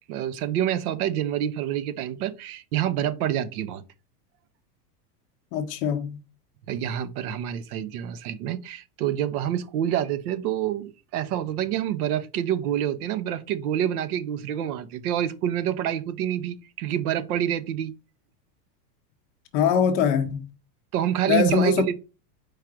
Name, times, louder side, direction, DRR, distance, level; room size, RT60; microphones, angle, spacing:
voice 1, 0.1-3.8 6.7-17.9 20.9-22.0, right 11 dB, 65° right, 0.7 m, -27 dB
voice 2, 5.5-6.2 19.5-20.5 21.3-21.8, left 7 dB, 35° left, 0.5 m, -22 dB
4.7 x 2.4 x 4.5 m
supercardioid pair, 160°, 47 cm